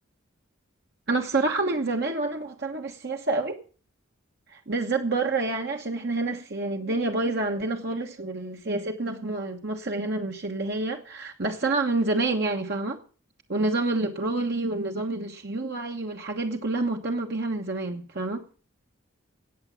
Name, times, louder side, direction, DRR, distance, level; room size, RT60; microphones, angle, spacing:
voice 1, 1.1-3.6 4.5-13.0 13.5-18.4, right 2 dB, 55° right, 2 dB, 1.2 m, -28 dB
17.5 x 7.2 x 7.0 m, 0.40 s
head